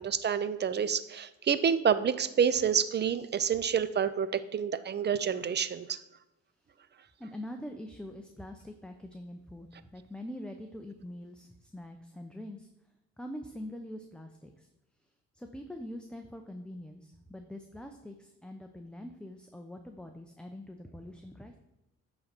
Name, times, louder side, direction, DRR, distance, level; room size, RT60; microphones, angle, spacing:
voice 1, 0.0-6.0, right 7 dB, 35° right, 14 dB, 0.6 m, -28 dB
voice 2, 7.2-12.7 13.2-14.7 15.3-21.6, left 1 dB, 5° left, 4 dB, 0.7 m, -44 dB
9.6 x 3.9 x 6.0 m, 0.95 s
cardioid pair, 90°, 30 cm